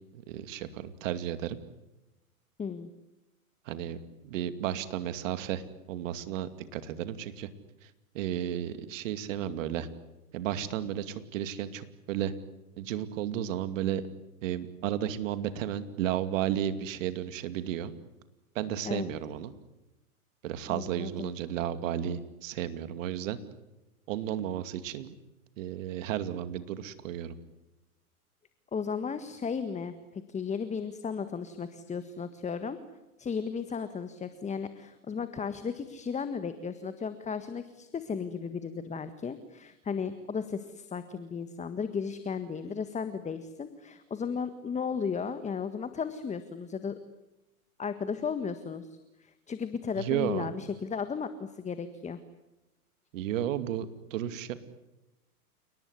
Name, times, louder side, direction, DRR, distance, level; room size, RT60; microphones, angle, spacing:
voice 1, 0.1-1.6 3.7-4.0 4.2-7.5 8.1-9.9 10.3-12.3 12.8-14.0 14.4-17.9 18.5-19.5 20.4-23.4 24.1-25.1 25.6-27.3 50.0-50.5 53.1-54.7, right 11 dB, 60° right, 11 dB, 2.6 m, -33 dB
voice 2, 2.6-2.9 18.8-19.1 20.7-21.3 28.7-32.8 33.2-46.9 47.8-48.9 49.2-52.2, left 6 dB, 15° left, 11 dB, 1.6 m, -35 dB
29.5 x 19.0 x 9.7 m, 0.99 s
hypercardioid pair, 105°, 44 cm